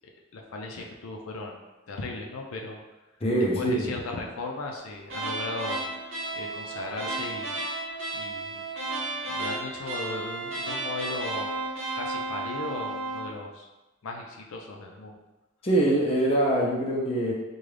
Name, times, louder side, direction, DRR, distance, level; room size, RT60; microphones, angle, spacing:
voice 1, 0.3-1.5 1.9-2.8 3.5-5.8 6.3-7.5 8.1-8.6 9.2-11.5 11.9-13.7 14.0-15.2, left 2 dB, 85° left, 1 dB, 0.5 m, -36 dB
voice 2, 3.2-3.9 15.6-17.3, right 1 dB, 25° left, -4 dB, 0.5 m, -24 dB
sound 1, 5.1-13.3, right 2 dB, 70° right, 0.8 m, -33 dB
3.7 x 2.3 x 3.3 m, 1.1 s
head